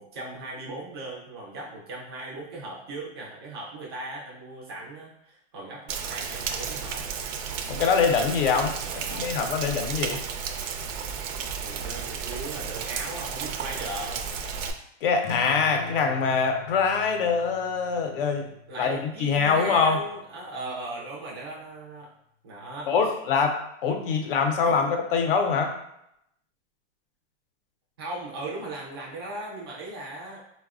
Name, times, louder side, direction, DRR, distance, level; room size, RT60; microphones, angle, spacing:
voice 1, 0.0-7.0 8.8-9.5 11.6-14.3 18.7-22.1 22.4-22.9 28.0-30.4, right 2 dB, 25° right, -4 dB, 0.3 m, -38 dB
Rain, 5.9-14.7, right 6 dB, 85° right, 0.5 m, -33 dB
voice 2, 7.7-10.2 15.0-18.5 18.8-20.0 22.9-25.8, left 5 dB, 50° left, 5 dB, 0.5 m, -24 dB
sound 1, 15.2-20.3, left 6 dB, 85° left, 0.7 m, -42 dB
4.0 x 2.1 x 2.3 m, 0.78 s
supercardioid pair, 170°, 37 cm